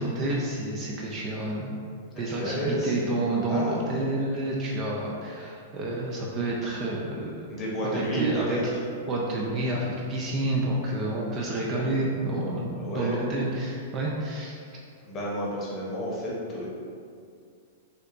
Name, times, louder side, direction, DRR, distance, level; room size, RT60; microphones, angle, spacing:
voice 1, 0.0-1.8 2.2-7.5 7.8-8.7 9.1-14.6, right 1 dB, 25° right, -3 dB, 0.4 m, -29 dB
voice 2, 2.1-2.9 3.5-4.0 7.5-8.6 12.8-13.2 15.0-16.7, equal, 20° left, -5 dB, 0.9 m, -31 dB
6.4 x 2.3 x 2.5 m, 2.3 s
supercardioid pair, 160°, 0 cm